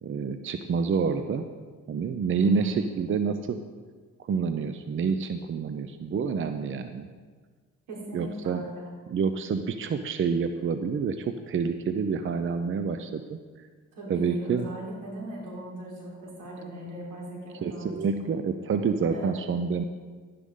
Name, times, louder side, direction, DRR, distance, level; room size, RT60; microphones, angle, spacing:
voice 1, 0.0-1.4 1.9-3.6 4.2-7.1 8.1-8.6 9.1-13.7 14.1-14.7 17.6-19.8, right 5 dB, 40° right, 9 dB, 0.6 m, -28 dB
voice 2, 7.9-8.8 13.9-18.0 19.1-19.4, right 2 dB, 90° right, -4 dB, 3.9 m, -38 dB
12.0 x 10.0 x 3.8 m, 1.5 s
cardioid pair, 90°, 30 cm